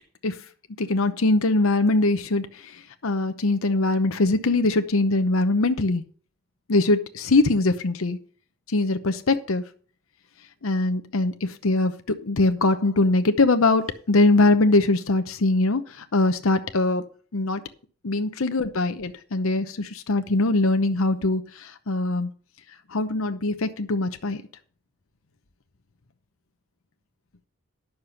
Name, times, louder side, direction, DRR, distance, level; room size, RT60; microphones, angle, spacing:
voice 1, 0.8-6.0 6.7-8.2 8.7-9.6 10.6-17.0 17.3-17.6 18.0-22.3 22.9-24.4, left 2 dB, 85° left, 9 dB, 0.8 m, -22 dB
10.5 x 6.7 x 5.7 m, 0.43 s
head